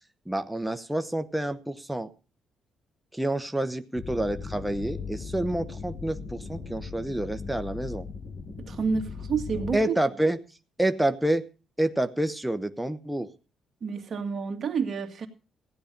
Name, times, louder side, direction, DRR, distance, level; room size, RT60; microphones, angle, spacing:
voice 1, 0.3-2.1 3.1-8.1 9.7-10.4 10.8-11.4 11.8-13.3, right 1 dB, 5° right, 8 dB, 1.0 m, -28 dB
sound 1, 3.9-9.8, left 5 dB, 45° left, 6.0 m, -38 dB
voice 2, 8.6-10.0 13.8-15.3, right 5 dB, 45° right, 5 dB, 2.2 m, -29 dB
16.0 x 10.0 x 5.2 m, 0.34 s
cardioid pair, 90°, 0 cm